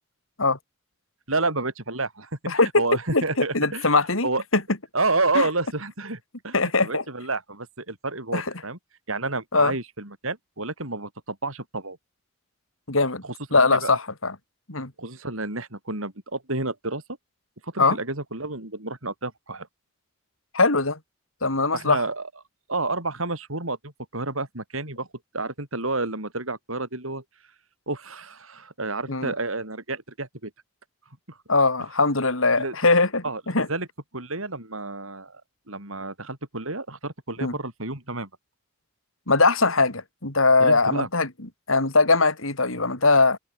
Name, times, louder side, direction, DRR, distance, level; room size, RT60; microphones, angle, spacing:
voice 1, 1.3-2.3 2.8-3.9 4.2-4.4 4.9-6.6 6.8-8.8 9.1-12.0 13.2-13.3 13.7-14.0 15.0-17.0 17.6-19.7 21.7-22.3 22.7-25.1 25.3-27.2 27.9-30.5 31.3-31.4 32.6-32.7 33.2-33.4 33.7-33.9 34.1-35.4 35.7-38.3 40.6-41.1, right 3 dB, 85° right, 7.0 m, -30 dB
voice 2, 3.5-4.6 5.3-5.5 6.5-7.0 8.3-8.4 9.5-9.7 12.9-13.2 13.5-14.4 14.7-14.9 17.8-18.0 20.5-21.0 21.4-22.0 29.1-29.3 31.5-33.7 37.4-37.5 39.3-41.3 41.7-43.4, left 3 dB, 85° left, 4.3 m, -21 dB
open air
head